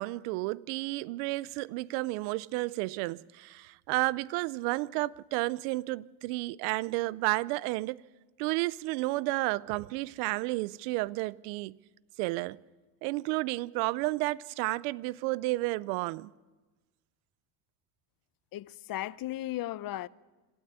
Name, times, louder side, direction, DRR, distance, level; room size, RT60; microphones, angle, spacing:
voice 1, 0.0-8.0 8.4-11.8 12.2-12.6 13.0-16.3, right 20 dB, 90° right, 0.6 m, -32 dB
voice 2, 18.5-20.1, left 14 dB, 45° left, 0.7 m, -36 dB
25.5 x 13.0 x 8.2 m
supercardioid pair, 100°, 48 cm